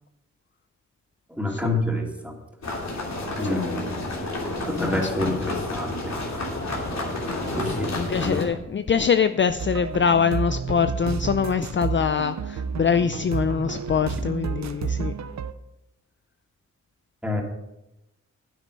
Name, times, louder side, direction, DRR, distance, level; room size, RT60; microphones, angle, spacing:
voice 1, 1.3-2.3 3.4-4.0 4.6-6.2 7.5-8.5 17.2-17.4, left 1 dB, 5° right, 0 dB, 2.8 m, -28 dB
sound 1, 2.6-8.4, left 2 dB, 65° left, 3.1 m, -30 dB
voice 2, 4.7-5.4 7.3-7.4 7.7-15.1, left 6 dB, 40° left, 11 dB, 0.5 m, -24 dB
sound 2, 9.6-15.5, right 6 dB, 65° right, 0.7 m, -30 dB
9.8 x 8.9 x 5.3 m, 0.91 s
cardioid pair, 60°, 30 cm